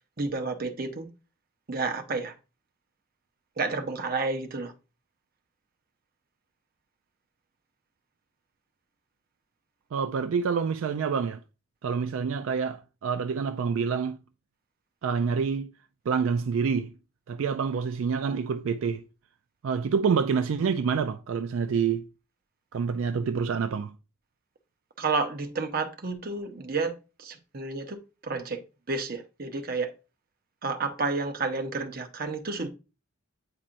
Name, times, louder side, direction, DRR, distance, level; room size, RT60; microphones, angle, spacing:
voice 1, 0.2-1.1 1.7-2.3 3.6-4.7 25.0-26.9 27.2-28.6 28.9-29.9 30.6-32.7, right 3 dB, 40° right, 0.8 m, -30 dB
voice 2, 9.9-11.4 11.8-14.2 15.0-15.7 16.1-16.9 17.3-19.0 19.6-22.1 22.7-23.9, right 6 dB, 65° right, 0.3 m, -27 dB
8.7 x 4.3 x 2.5 m
head